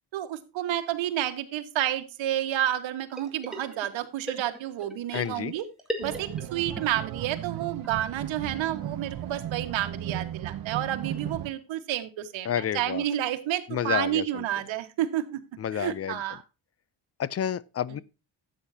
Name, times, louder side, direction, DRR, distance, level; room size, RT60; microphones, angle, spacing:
voice 1, 0.1-5.6 6.0-12.5 12.7-15.4 15.7-16.4, right 12 dB, 85° right, 1.5 m, -30 dB
sound 1, 3.1-4.0 4.3-6.8 7.1-7.2 7.4-7.5 7.8-7.9 8.3-8.4 8.6-8.7 9.1-9.2, right 1 dB, ahead, 2.0 m, -38 dB
voice 2, 5.1-5.5 12.4-13.0 13.7-14.5 15.6-16.2 17.2-18.0, left 9 dB, 35° left, 0.4 m, -30 dB
sound 2, 6.0-11.5, right 11 dB, 50° right, 0.7 m, -35 dB
12.5 x 8.7 x 2.7 m
cardioid pair, 120°, 45 cm